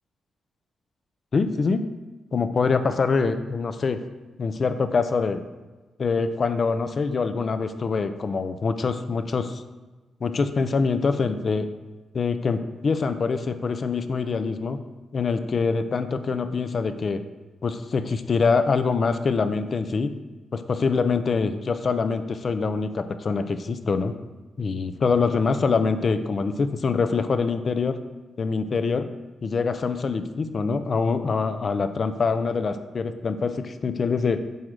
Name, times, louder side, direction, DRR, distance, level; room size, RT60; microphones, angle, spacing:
voice 1, 1.3-1.9 2.3-4.0 4.4-5.4 6.0-9.6 10.2-11.7 12.1-14.8 15.1-17.2 17.6-20.1 20.5-24.1 24.6-28.0 28.4-29.1 29.4-34.4, left 4 dB, 45° left, 10 dB, 0.6 m, -24 dB
9.3 x 3.7 x 6.4 m, 1.2 s
cardioid pair, 105°, 0 cm